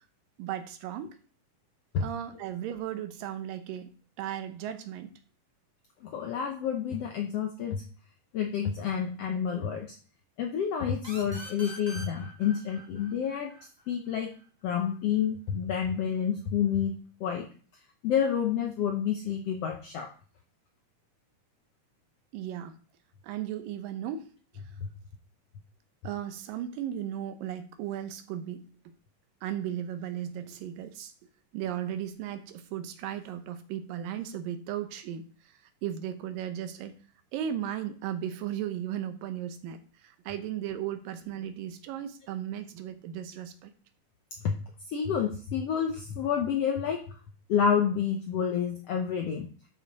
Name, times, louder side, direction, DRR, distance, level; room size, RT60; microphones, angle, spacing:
voice 1, 0.4-1.2 2.0-3.9 4.2-5.1 22.3-22.8 23.2-24.3 26.0-28.9 29.4-31.1 31.5-37.0 37.3-43.7, right 10 dB, 85° right, 9 dB, 2.6 m, -36 dB
voice 2, 6.0-7.8 8.3-9.9 10.4-13.5 13.9-14.3 14.6-16.9 17.2-17.5 18.0-20.1 44.4-44.5 44.9-47.0 47.5-49.5, left 8 dB, 75° left, 3 dB, 1.4 m, -29 dB
sound 1, 11.0-14.4, equal, 20° right, 0.6 m, -45 dB
11.5 x 5.5 x 4.1 m, 0.41 s
omnidirectional pair, 3.9 m